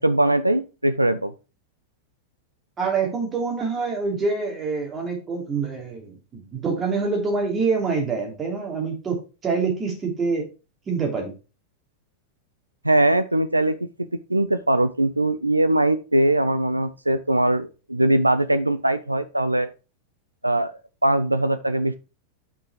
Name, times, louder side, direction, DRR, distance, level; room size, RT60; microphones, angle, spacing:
voice 1, 0.0-1.3 12.8-13.9 14.3-19.7 20.4-20.7 21.0-21.9, right 1 dB, 85° right, 12 dB, 0.4 m, -21 dB
voice 2, 2.8-10.5 10.9-11.3, right 4 dB, 20° right, 1 dB, 2.8 m, -26 dB
6.0 x 5.6 x 4.4 m, 0.32 s
figure-of-eight pair, 90°, 0 cm